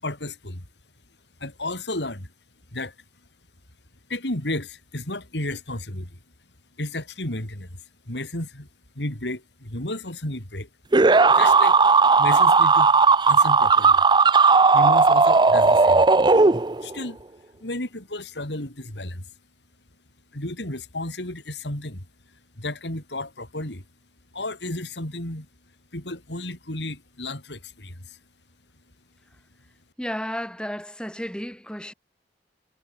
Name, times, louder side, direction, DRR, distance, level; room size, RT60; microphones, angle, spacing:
voice 1, 0.0-0.6 1.4-2.3 2.7-2.9 4.1-6.2 6.8-7.8 8.1-8.7 9.0-10.7 11.4-11.8 12.2-12.9 13.2-14.0 14.7-16.1 16.8-17.2 17.6-19.3 20.3-22.0 22.6-23.8 24.3-25.5 25.9-28.2, left 1 dB, 80° left, 5.2 m, -32 dB
sound 1, 10.9-17.0, right 4 dB, 25° right, 0.6 m, -16 dB
voice 2, 30.0-31.9, equal, 5° left, 5.7 m, -32 dB
head